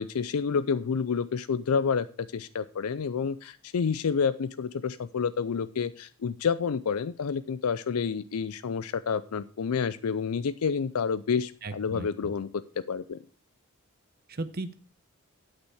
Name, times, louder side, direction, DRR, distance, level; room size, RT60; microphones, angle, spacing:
voice 1, 0.0-2.1 2.3-13.2, left 6 dB, 90° left, 14 dB, 0.5 m, -29 dB
voice 2, 11.6-12.3 14.3-14.7, right 2 dB, 45° right, 11 dB, 0.9 m, -36 dB
9.2 x 8.4 x 4.8 m, 0.38 s
head